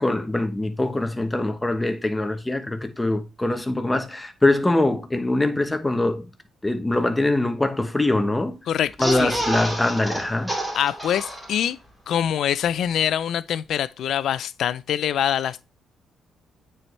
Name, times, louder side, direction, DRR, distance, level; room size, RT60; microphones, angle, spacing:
voice 1, 0.0-6.3 6.6-8.6 9.0-10.5, left 2 dB, 15° left, 1.0 m, -23 dB
voice 2, 8.7-9.3 10.7-11.8 12.1-15.6, left 10 dB, 70° left, 0.4 m, -24 dB
sound 1, 8.9-11.9 12.2-12.3 12.5-12.7, right 1 dB, 10° right, 2.7 m, -29 dB
8.7 x 4.5 x 3.3 m
cardioid pair, 90°, 0 cm